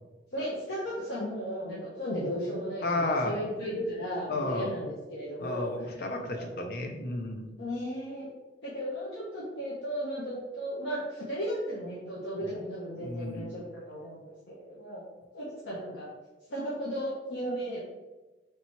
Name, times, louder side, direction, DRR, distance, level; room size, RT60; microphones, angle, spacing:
voice 1, 0.3-6.0 6.3-6.6 7.6-8.3 8.6-15.0 15.3-16.1 16.5-17.8, equal, 80° left, -6 dB, 0.9 m, -35 dB
voice 2, 2.8-3.4 4.3-4.7 5.4-7.5 12.4-12.6 13.0-13.5, left 2 dB, 55° left, 4 dB, 0.6 m, -32 dB
3.3 x 2.9 x 4.3 m, 1.1 s
head